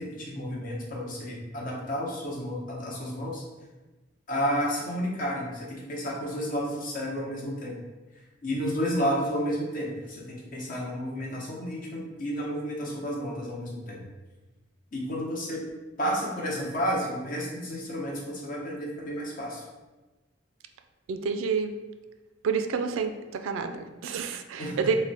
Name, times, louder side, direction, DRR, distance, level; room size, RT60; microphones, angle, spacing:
voice 1, 0.0-3.4 4.3-7.8 8.4-14.0 14.9-15.6 16.0-19.6 24.6-25.0, equal, 45° left, -3 dB, 0.8 m, -31 dB
voice 2, 21.1-21.7 22.4-23.1 23.4-24.9, right 5 dB, 80° right, 7 dB, 0.3 m, -28 dB
3.4 x 2.2 x 4.0 m, 1.2 s
head